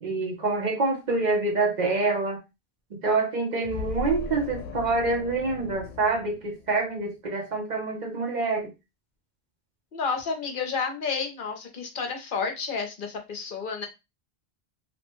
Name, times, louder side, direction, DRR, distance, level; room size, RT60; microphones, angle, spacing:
voice 1, 0.0-2.4 2.9-8.7, right 3 dB, 50° right, 1 dB, 0.7 m, -26 dB
sound 1, 3.6-7.1, left 3 dB, 85° left, 0.9 m, -38 dB
voice 2, 9.9-13.9, left 5 dB, 60° left, 4 dB, 0.8 m, -30 dB
2.9 x 2.1 x 3.0 m, 0.24 s
omnidirectional pair, 1.1 m